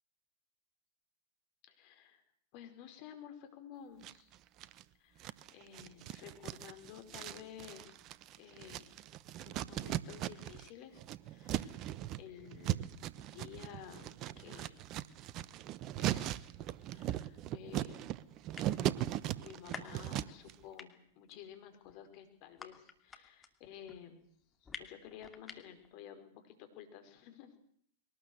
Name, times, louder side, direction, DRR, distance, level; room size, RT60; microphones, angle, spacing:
voice 1, 1.7-2.2 2.5-4.3 5.0-8.0 8.4-8.9 9.5-11.0 11.3-11.9 12.2-14.1 14.4-14.7 15.9-16.5 16.9-18.2 19.4-24.3 24.6-27.6, left 9 dB, 45° left, 7 dB, 5.1 m, -53 dB
sound 1, 4.0-4.8 5.2-10.7 10.9-20.5, right 13 dB, 40° right, 1.0 m, -39 dB
sound 2, 18.4-19.0 19.4-20.5 20.8-25.9, left 5 dB, 15° left, 2.6 m, -49 dB
22.5 x 19.0 x 8.1 m, 0.66 s
hypercardioid pair, 105°, 0 cm